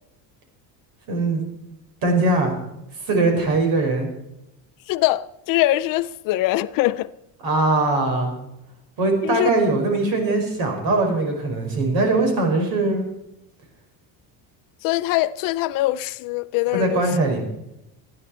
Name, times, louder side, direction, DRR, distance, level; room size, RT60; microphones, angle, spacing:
voice 1, 1.1-1.4 2.0-2.5 2.9-4.1 7.4-8.4 9.0-13.0 16.7-17.4, right 2 dB, 55° right, 5.3 m, -21 dB
voice 2, 4.9-7.1 9.2-9.5 14.8-17.1, left 16 dB, 55° left, 0.5 m, -22 dB
27.5 x 10.0 x 4.4 m
cardioid pair, 175°, 41 cm